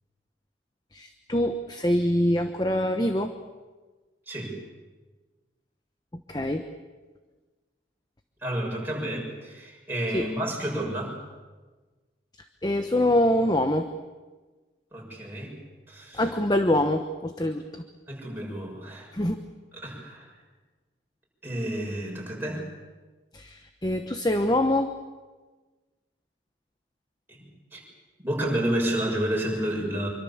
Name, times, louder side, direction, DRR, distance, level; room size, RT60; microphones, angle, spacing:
voice 1, 0.9-3.3 6.1-6.6 10.1-10.3 12.6-13.9 16.1-17.8 19.1-19.4 23.3-24.9, left 1 dB, 20° left, 7 dB, 1.0 m, -25 dB
voice 2, 8.4-11.1 14.9-15.5 15.9-16.2 18.1-19.1 19.8-20.3 21.4-22.6 27.3-27.4 27.7-27.8 28.2-30.1, right 1 dB, 10° right, -2 dB, 6.8 m, -30 dB
26.0 x 24.5 x 7.3 m, 1.3 s
head